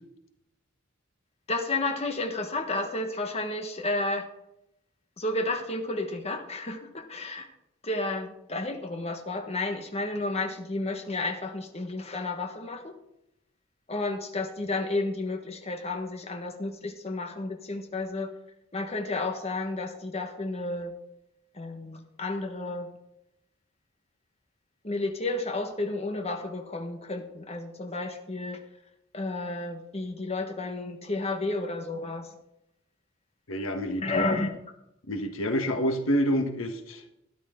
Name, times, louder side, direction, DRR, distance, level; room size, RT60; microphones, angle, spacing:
voice 1, 1.5-4.3 5.2-7.5 7.8-13.0 13.9-18.3 18.7-20.9 21.5-22.9 24.8-28.6 29.1-32.3 33.9-34.5, left 2 dB, 30° left, 4 dB, 1.4 m, -31 dB
voice 2, 33.5-34.3 35.1-37.0, equal, 80° left, 6 dB, 1.4 m, -28 dB
13.0 x 11.5 x 3.8 m, 0.84 s
head